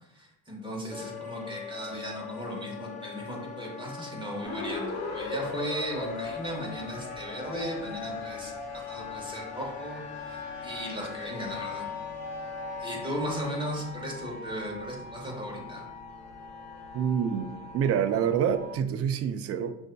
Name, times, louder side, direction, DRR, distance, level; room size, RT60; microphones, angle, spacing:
voice 1, 0.1-11.9 12.8-15.8, equal, 15° right, -1 dB, 1.3 m, -36 dB
Wind instrument woodwind instrument, 0.9-13.8, left 8 dB, 20° left, 0.6 m, -42 dB
sound 1, 4.4-18.8, left 3 dB, 45° left, 1.2 m, -40 dB
voice 2, 16.9-19.7, right 8 dB, 40° right, 10 dB, 0.4 m, -27 dB
6.1 x 2.6 x 2.2 m, 0.85 s
supercardioid pair, 80°, 37 cm